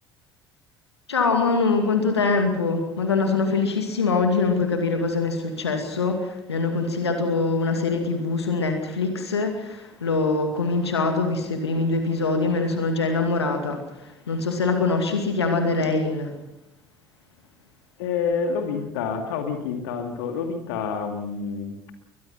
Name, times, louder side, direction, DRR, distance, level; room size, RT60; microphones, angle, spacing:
voice 1, 1.1-16.3, left 3 dB, 85° left, 5 dB, 2.4 m, -23 dB
voice 2, 18.0-21.9, left 5 dB, 70° left, 5 dB, 2.4 m, -28 dB
22.5 x 20.5 x 5.8 m, 0.88 s
figure-of-eight pair, 60°, 13 cm